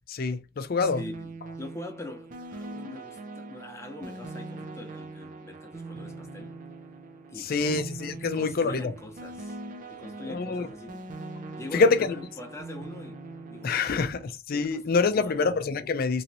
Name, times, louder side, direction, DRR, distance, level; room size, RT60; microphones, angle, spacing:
voice 1, 0.1-1.0 7.4-8.8 10.2-10.7 11.7-12.2 13.6-16.2, left 4 dB, 50° left, 0.4 m, -26 dB
voice 2, 0.8-6.6 7.3-7.9 8.2-9.6 9.9-11.0 11.6-13.8 14.1-14.2 14.7-15.5, left 2 dB, 15° left, 0.7 m, -43 dB
sound 1, 0.8-14.3, right 3 dB, 45° right, 0.5 m, -42 dB
3.1 x 2.8 x 2.6 m
head